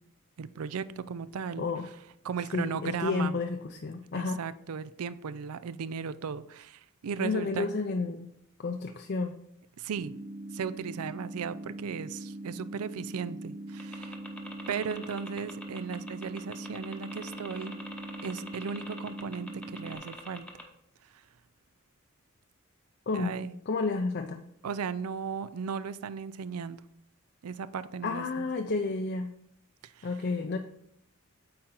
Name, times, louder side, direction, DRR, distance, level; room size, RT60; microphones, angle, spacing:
voice 1, 0.4-1.7 2.2-3.4 4.1-7.7 9.8-10.1 10.5-14.2 14.7-17.7 18.2-20.5 21.1-21.2 23.1-23.5 24.6-26.8 27.4-28.5 29.8-30.1, right 6 dB, 90° right, 16 dB, 0.4 m, -36 dB
voice 2, 2.5-4.4 7.2-8.3 8.6-9.3 23.1-23.4 23.7-24.4 28.0-29.3 30.0-30.6, left 4 dB, 50° left, 5 dB, 0.4 m, -31 dB
sound 1, 10.0-20.0, right 1 dB, 25° right, 0.3 m, -42 dB
sound 2, 13.8-20.6, equal, 5° left, 0.8 m, -44 dB
8.6 x 4.4 x 3.8 m, 0.73 s
head